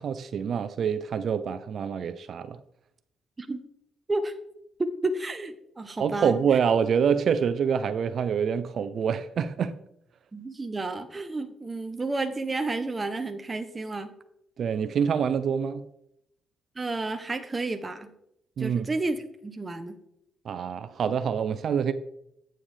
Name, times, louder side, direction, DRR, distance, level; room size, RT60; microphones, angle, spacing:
voice 1, 0.0-2.6 6.0-9.7 14.6-15.9 18.6-18.9 20.5-21.9, right 7 dB, 60° right, 0.5 m, -26 dB
voice 2, 4.8-6.4 10.3-14.1 16.8-18.1 18.6-20.0, right 2 dB, 25° right, 0.7 m, -31 dB
8.9 x 7.5 x 3.3 m
cardioid pair, 90°, 0 cm